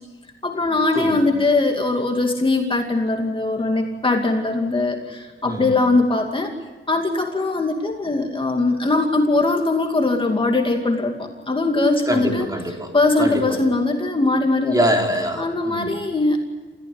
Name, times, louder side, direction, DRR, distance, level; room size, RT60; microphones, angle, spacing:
voice 1, 0.4-6.5 6.9-12.5 12.9-14.8 15.4-16.4, left 2 dB, 25° left, 2 dB, 2.5 m, -21 dB
voice 2, 12.1-12.9 13.2-13.6 14.7-16.0, equal, 20° right, 2 dB, 3.7 m, -24 dB
28.5 x 15.5 x 9.7 m, 1.3 s
wide cardioid pair, 115°, 21 cm